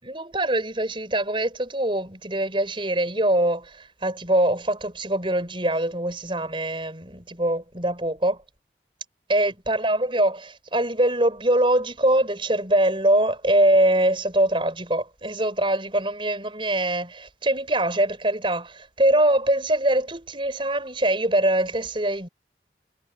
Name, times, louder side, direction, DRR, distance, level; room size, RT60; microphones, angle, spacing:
voice 1, 0.0-8.4 9.3-22.3, right 1 dB, 30° right, 6.2 m, -23 dB
head